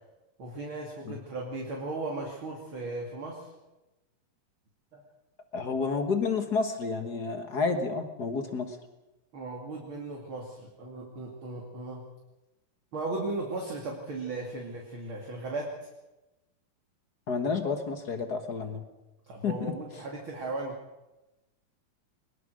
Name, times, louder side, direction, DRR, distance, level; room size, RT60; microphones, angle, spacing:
voice 1, 0.4-3.5 4.9-5.0 9.3-12.1 12.9-15.9 19.3-20.8, right 2 dB, 40° right, -1 dB, 3.0 m, -36 dB
voice 2, 5.5-8.8 17.3-18.8 19.4-19.7, left 4 dB, 55° left, 6 dB, 1.1 m, -30 dB
21.5 x 21.0 x 6.4 m, 1.0 s
omnidirectional pair, 4.0 m